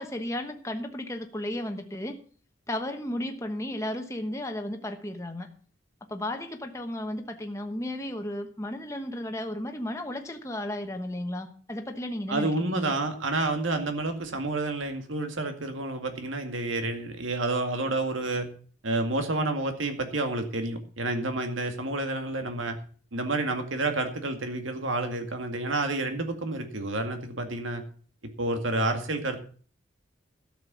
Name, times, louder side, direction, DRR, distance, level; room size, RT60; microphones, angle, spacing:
voice 1, 0.0-2.2 2.7-5.5 6.1-12.9, left 1 dB, 15° left, 5 dB, 1.1 m, -34 dB
voice 2, 12.3-18.5 18.8-22.8 23.1-27.8 28.4-29.4, right 2 dB, 85° right, 6 dB, 2.1 m, -29 dB
12.5 x 6.9 x 6.9 m, 0.43 s
head